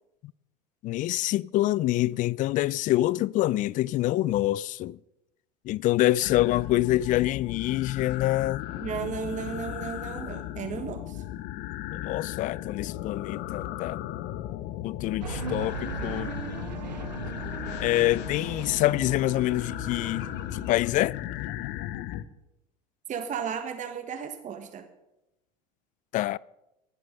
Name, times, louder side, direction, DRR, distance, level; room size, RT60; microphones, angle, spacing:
voice 1, 0.8-5.0 5.6-8.6 11.9-14.0 14.8-16.3 17.8-21.2 26.1-26.4, left 16 dB, 40° left, 0.4 m, -26 dB
sound 1, 6.2-22.2, left 14 dB, 55° left, 0.9 m, -36 dB
voice 2, 8.8-11.2 23.1-24.9, right 7 dB, 35° right, 1.5 m, -34 dB
sound 2, 15.2-20.7, right 4 dB, 90° right, 1.8 m, -38 dB
16.0 x 11.0 x 5.5 m
hypercardioid pair, 80°, 21 cm